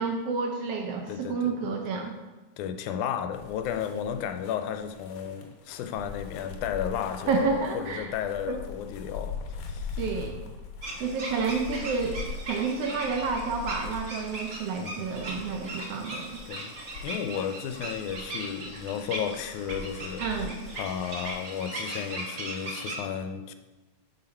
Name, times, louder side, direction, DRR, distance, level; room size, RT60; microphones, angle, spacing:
voice 1, 0.0-2.1 7.3-8.1 8.5-8.6 10.0-10.4 11.0-16.4 20.2-20.6, right 5 dB, 75° right, 3 dB, 1.4 m, -30 dB
voice 2, 1.1-1.8 2.6-10.0 14.8-15.1 16.5-16.7 17.0-20.5 20.8-23.5, left 8 dB, 90° left, 8 dB, 2.1 m, -33 dB
sound 1, 3.3-22.1, left 5 dB, 75° left, 2.1 m, -42 dB
sound 2, 10.8-23.0, right 1 dB, 45° right, 0.9 m, -38 dB
7.9 x 6.4 x 4.3 m, 1.2 s
omnidirectional pair, 3.4 m